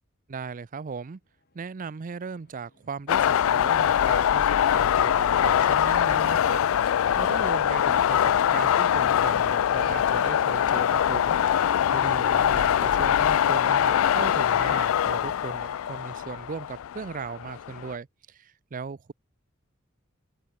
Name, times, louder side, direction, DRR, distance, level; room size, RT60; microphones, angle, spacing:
voice 1, 0.3-1.2 1.5-6.6 7.2-11.6 11.9-19.1, right 5 dB, 40° right, 0.5 m, -37 dB
sound 1, 1.1-18.0, left 1 dB, 50° left, 4.8 m, -64 dB
sound 2, 3.1-17.9, left 9 dB, 85° left, 0.4 m, -23 dB
open air
head